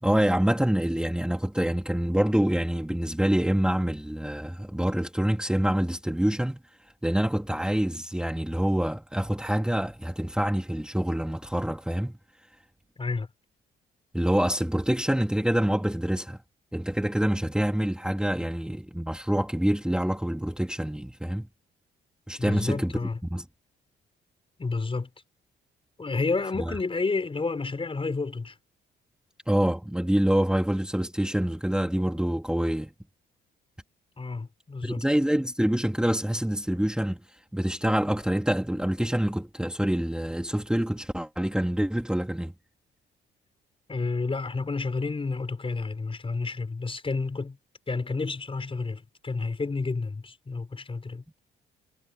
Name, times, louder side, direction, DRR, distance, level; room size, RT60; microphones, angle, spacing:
voice 1, 0.0-6.6 7.0-12.2 14.1-16.4 16.7-21.4 22.3-22.9 23.2-23.4 26.6-26.7 29.5-32.9 34.8-37.2 37.5-42.5, right 1 dB, 5° right, 3.2 m, -26 dB
voice 2, 22.4-23.2 24.6-25.1 26.0-28.6 34.2-35.0 43.9-47.6 47.9-51.2, left 4 dB, 25° left, 4.6 m, -30 dB
cardioid pair, 90°, 20 cm